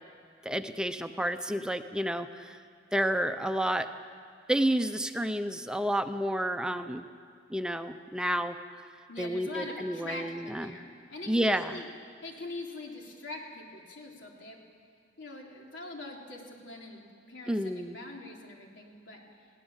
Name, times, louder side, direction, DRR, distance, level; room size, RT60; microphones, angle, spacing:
voice 1, 0.4-2.6 2.9-3.9 4.5-7.1 7.5-8.9 9.2-10.8 11.3-11.8 17.5-18.0, right 1 dB, 5° right, 8 dB, 0.6 m, -30 dB
voice 2, 9.1-11.9 12.2-14.6 15.2-19.5, left 2 dB, 90° left, 0 dB, 3.3 m, -43 dB
21.5 x 17.0 x 7.3 m, 2.3 s
head